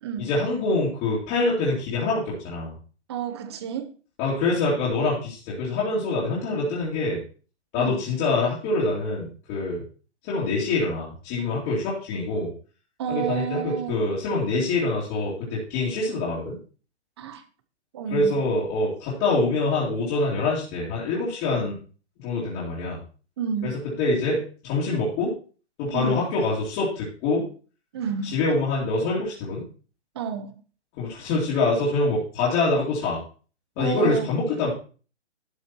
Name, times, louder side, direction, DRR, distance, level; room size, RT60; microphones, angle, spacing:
voice 1, 0.2-2.7 4.2-7.2 7.7-9.8 10.2-12.5 13.1-16.6 18.1-21.7 22.2-23.0 23.6-23.7 24.0-25.3 25.8-27.4 28.2-29.6 31.0-33.2 33.8-34.7, left 3 dB, 20° left, 2.7 m, -25 dB
voice 2, 3.1-3.9 7.8-8.0 13.0-13.9 17.2-17.4 17.9-18.3 23.4-23.8 25.9-26.2 27.9-28.4 30.1-30.6 33.8-34.3, right 7 dB, 25° right, 0.8 m, -30 dB
11.5 x 5.9 x 4.4 m
hypercardioid pair, 160°, 34 cm